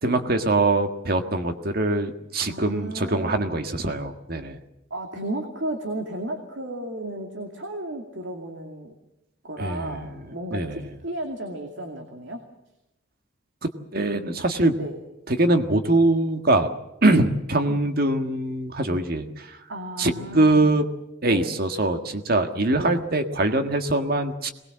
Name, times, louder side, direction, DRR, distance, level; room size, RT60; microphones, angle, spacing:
voice 1, 0.0-4.6 9.6-10.9 13.9-14.8 15.3-16.7 17.0-19.6 20.0-20.8 21.2-24.5, right 2 dB, 50° right, 7 dB, 1.7 m, -23 dB
voice 2, 2.4-3.5 4.9-8.9 9.4-12.5 14.8-14.9 17.7-17.8 19.7-20.7 21.3-21.5 22.8-23.0, right 1 dB, 75° right, 4 dB, 2.4 m, -34 dB
22.5 x 20.0 x 7.5 m, 0.92 s
head